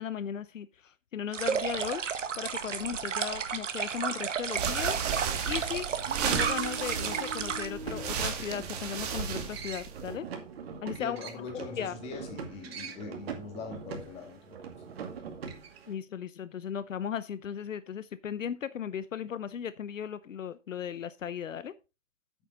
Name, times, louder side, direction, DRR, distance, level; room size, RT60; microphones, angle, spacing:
voice 1, 0.0-2.0 2.3-5.0 5.4-10.3 10.8-11.2 11.7-11.9 15.9-21.7, left 8 dB, 75° left, 0.8 m, -36 dB
sound 1, 1.3-7.7, right 7 dB, 70° right, 1.6 m, -33 dB
sound 2, 4.4-10.1, right 7 dB, 30° right, 1.7 m, -34 dB
sound 3, 5.9-15.9, right 6 dB, 50° right, 2.4 m, -40 dB
voice 2, 11.0-14.9, left 5 dB, 15° left, 2.0 m, -42 dB
9.2 x 8.4 x 3.8 m
hypercardioid pair, 155°, 39 cm